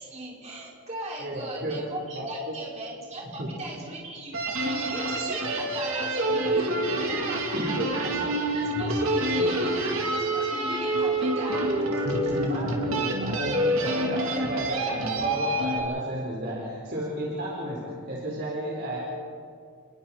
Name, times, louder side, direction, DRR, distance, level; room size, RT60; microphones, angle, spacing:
voice 1, 0.0-12.5, right 1 dB, 30° right, -5 dB, 5.5 m, -38 dB
voice 2, 1.2-1.8 2.1-2.6 3.4-3.5 7.5-7.9 9.3-9.6 12.0-19.0, right 1 dB, 50° right, -4 dB, 4.0 m, -33 dB
sound 1, 4.3-15.8, right 1 dB, 70° right, 3.1 m, -27 dB
29.0 x 21.5 x 4.4 m, 2.3 s
head